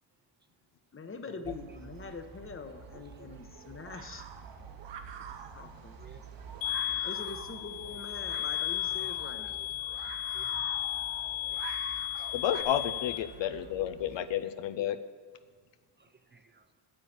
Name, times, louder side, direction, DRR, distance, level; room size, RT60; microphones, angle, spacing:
voice 1, 0.9-4.2 5.5-6.0 7.0-9.6, left 4 dB, 25° left, 1.0 m, -43 dB
sound 1, 1.4-14.2, right 5 dB, 45° right, 1.4 m, -51 dB
sound 2, 2.7-12.6, right 7 dB, 65° right, 1.0 m, -47 dB
voice 2, 2.9-3.4 4.9-5.0 6.0-6.3 6.8-7.3 8.9-9.2 9.6-9.7 10.2-10.6 11.5-11.7 13.3-13.6 13.9-14.0 14.3-14.4 16.0-16.8, right 5 dB, 25° right, 0.5 m, -57 dB
sound 3, 6.6-13.2, left 14 dB, 45° left, 1.5 m, -34 dB
voice 3, 12.3-15.0, left 10 dB, 70° left, 0.7 m, -31 dB
9.8 x 7.6 x 7.4 m
cardioid pair, 110°, 46 cm